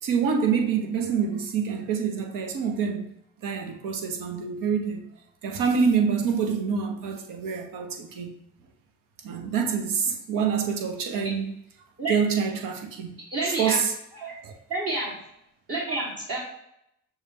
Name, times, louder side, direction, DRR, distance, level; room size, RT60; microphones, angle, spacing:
voice 1, 0.0-3.1 3.4-5.0 5.4-8.3 9.2-11.5 12.1-13.1 13.4-13.9 14.2-14.5 15.9-16.0, right 6 dB, 70° right, 0.8 m, -26 dB
voice 2, 13.3-13.8 14.1-14.3 14.7-15.1 15.7-16.4, right 2 dB, 40° right, 1.2 m, -29 dB
6.3 x 2.2 x 3.4 m
hypercardioid pair, 55°, 34 cm